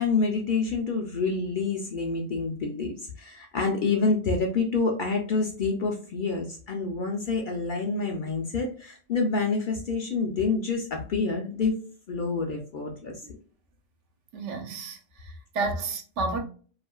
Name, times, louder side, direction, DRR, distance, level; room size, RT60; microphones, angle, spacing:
voice 1, 0.0-11.8 12.1-13.2, left 4 dB, 60° left, 0.5 m, -27 dB
voice 2, 14.3-16.4, right 3 dB, 75° right, 0.9 m, -31 dB
2.7 x 2.4 x 2.2 m
omnidirectional pair, 1.2 m